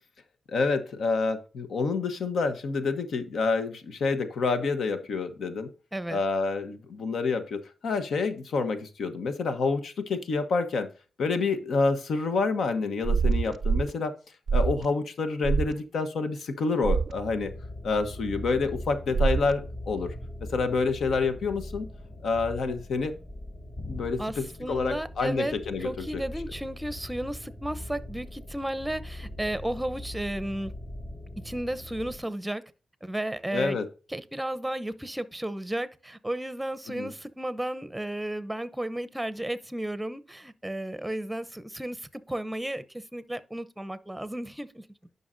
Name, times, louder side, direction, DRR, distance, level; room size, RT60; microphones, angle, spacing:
voice 1, 0.5-5.7 6.1-10.9 11.2-14.1 14.5-17.5 17.8-20.1 20.5-21.9 22.2-23.1 23.9-26.2 33.5-33.9 37.0-37.1, left 4 dB, 75° left, 1.1 m, -28 dB
sound 1, 13.0-13.9 14.5-14.9 15.4-15.7 16.8-17.1 19.1-19.5, right 5 dB, 55° right, 0.4 m, -25 dB
sound 2, 17.1-32.2, left 1 dB, 50° left, 3.3 m, -41 dB
voice 2, 24.2-25.5 25.8-30.7 31.4-32.6 33.0-33.8 34.1-44.8, right 1 dB, 10° right, 0.8 m, -33 dB
11.0 x 5.6 x 2.6 m
cardioid pair, 75°, 0 cm